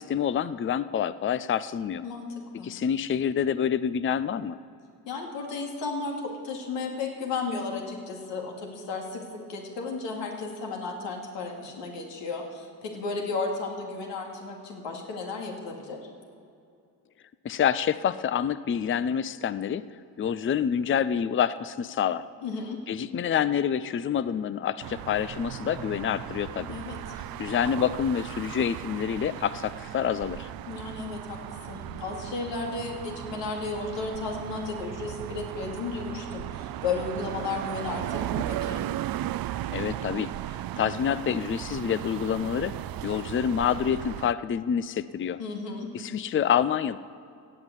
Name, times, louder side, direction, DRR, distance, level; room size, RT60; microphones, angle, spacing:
voice 1, 0.0-2.0 2.6-4.6 17.4-19.9 20.2-22.3 22.9-26.7 27.4-30.5 39.7-42.7 43.0-45.4 45.9-47.0, left 8 dB, 30° left, 16 dB, 0.5 m, -27 dB
voice 2, 2.0-2.7 5.1-16.0 22.4-22.8 26.7-27.0 30.7-38.8 45.4-45.9, left 4 dB, 85° left, 1 dB, 2.5 m, -34 dB
sound 1, 24.8-44.3, right 13 dB, 55° right, 0.5 m, -36 dB
16.5 x 9.1 x 8.2 m, 2.5 s
supercardioid pair, 65°, 43 cm